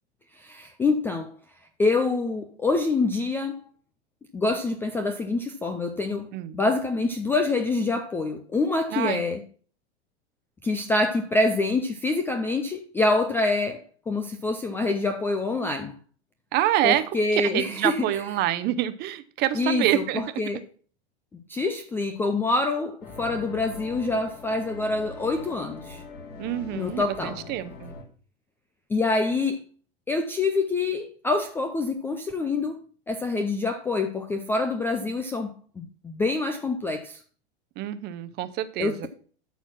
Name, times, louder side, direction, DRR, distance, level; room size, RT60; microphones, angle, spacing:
voice 1, 0.4-1.4 1.8-3.6 4.3-6.3 6.5-9.4 10.6-16.0 16.8-18.2 19.5-20.6 21.5-26.0 26.7-27.4 28.9-29.6 30.1-37.2 38.8-39.1, left 3 dB, 5° left, 0.4 m, -26 dB
voice 2, 8.9-9.2 16.5-17.0 17.4-20.2 26.4-27.9 37.8-39.1, right 13 dB, 30° right, 0.8 m, -26 dB
sound 1, 23.0-28.0, left 3 dB, 30° left, 2.2 m, -42 dB
13.0 x 4.4 x 5.9 m
supercardioid pair, 145°, 34 cm